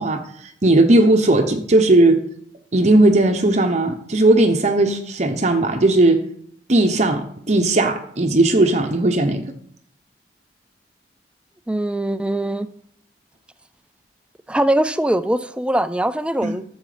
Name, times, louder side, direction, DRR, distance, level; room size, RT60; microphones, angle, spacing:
voice 1, 0.0-2.2 2.7-6.2 6.7-9.5 16.4-16.5, right 2 dB, 40° right, 0.9 m, -17 dB
voice 2, 11.7-12.7 14.5-16.6, right 1 dB, 5° right, 0.5 m, -21 dB
13.0 x 7.2 x 5.0 m
head